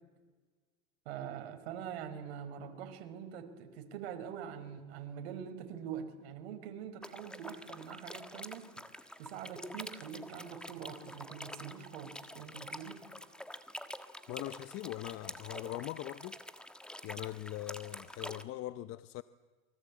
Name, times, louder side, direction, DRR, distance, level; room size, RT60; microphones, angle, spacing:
voice 1, 1.1-8.7 9.2-13.0, right 8 dB, 80° right, 5.2 m, -44 dB
sound 1, 7.0-18.4, left 1 dB, 5° left, 1.5 m, -47 dB
voice 2, 14.3-16.4 17.0-19.2, left 15 dB, 45° left, 0.8 m, -41 dB
28.5 x 24.0 x 8.7 m
supercardioid pair, 130°, 32 cm